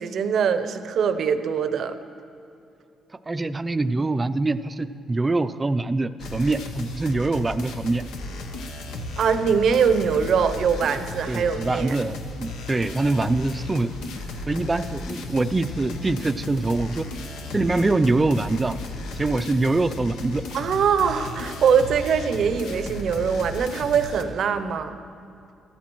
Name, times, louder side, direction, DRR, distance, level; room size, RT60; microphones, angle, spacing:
voice 1, 0.0-2.0 9.2-12.0 20.5-25.0, right 6 dB, 65° right, 10 dB, 0.6 m, -22 dB
voice 2, 3.3-8.0 11.3-13.9 14.5-17.1 17.5-18.7 19.2-20.4, right 2 dB, 20° right, 13 dB, 0.4 m, -24 dB
sound 1, 6.2-24.2, left 2 dB, 85° left, 0.8 m, -35 dB
13.5 x 13.0 x 3.0 m, 2.7 s
cardioid pair, 90°, 0 cm